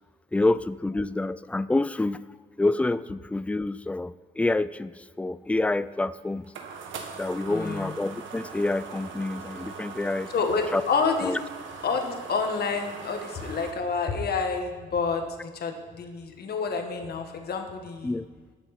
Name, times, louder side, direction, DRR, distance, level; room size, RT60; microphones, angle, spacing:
voice 1, 0.3-2.2 2.6-6.5 7.2-10.3 10.7-10.8 11.2-11.4 18.0-18.3, left 2 dB, 5° left, 16 dB, 0.3 m, -27 dB
sound 1, 5.8-13.7, right 5 dB, 75° right, 1.4 m, -41 dB
voice 2, 7.5-7.9 10.3-11.4 11.8-18.2, left 5 dB, 55° left, 4 dB, 1.6 m, -29 dB
19.0 x 6.8 x 4.3 m, 1.4 s
cardioid pair, 90°, 20 cm